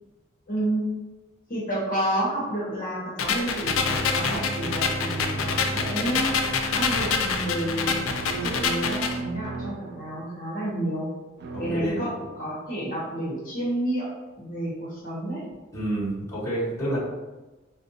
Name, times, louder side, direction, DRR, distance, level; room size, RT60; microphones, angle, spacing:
voice 1, 0.5-0.9 1.5-6.3 6.7-11.1 11.6-14.1 14.4-15.4, right 1 dB, 45° left, -6 dB, 0.8 m, -30 dB
sound 1, 3.2-9.2, left 5 dB, 75° left, 0.4 m, -26 dB
sound 2, 3.6-10.7 11.4-11.9, right 2 dB, 55° right, 0.3 m, -35 dB
voice 2, 11.5-12.0 15.7-17.0, right 1 dB, 15° left, -9 dB, 1.1 m, -29 dB
3.7 x 2.4 x 2.7 m, 1.2 s
head